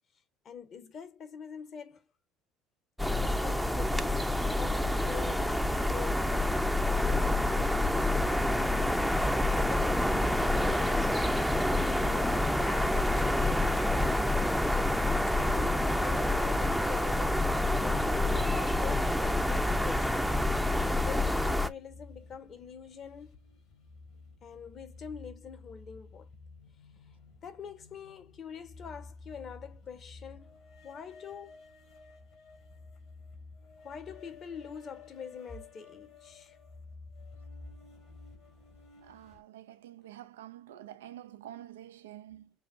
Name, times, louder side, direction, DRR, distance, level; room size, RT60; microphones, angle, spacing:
voice 1, 0.4-2.0 3.1-6.4 6.9-11.1 11.9-14.2 15.4-20.4 20.8-23.3 24.4-26.3 27.4-30.5 30.8-31.6 33.8-36.6, left 7 dB, 45° left, 1.3 m, -44 dB
sound 1, 3.0-21.7, left 1 dB, ahead, 0.6 m, -27 dB
sound 2, 20.8-39.4, left 3 dB, 60° left, 2.6 m, -52 dB
voice 2, 39.0-42.5, right 12 dB, 85° right, 0.4 m, -48 dB
6.9 x 2.7 x 2.6 m
hypercardioid pair, 65°, 0 cm